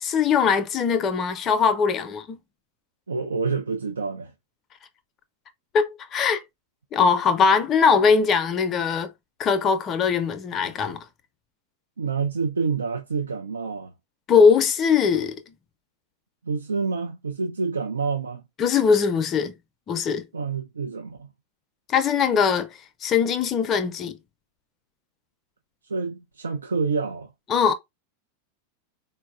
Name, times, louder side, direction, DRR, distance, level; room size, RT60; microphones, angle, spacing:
voice 1, 0.0-2.4 5.7-6.4 6.9-9.1 9.4-11.0 14.3-15.4 18.6-19.5 19.9-20.2 21.9-22.7 23.0-24.1 27.5-27.7, left 6 dB, 30° left, 0.5 m, -21 dB
voice 2, 3.1-4.3 12.0-13.9 16.4-18.4 20.3-21.3 25.9-27.3, right 4 dB, 75° right, 0.4 m, -27 dB
4.0 x 2.0 x 2.4 m
figure-of-eight pair, 90°, 0 cm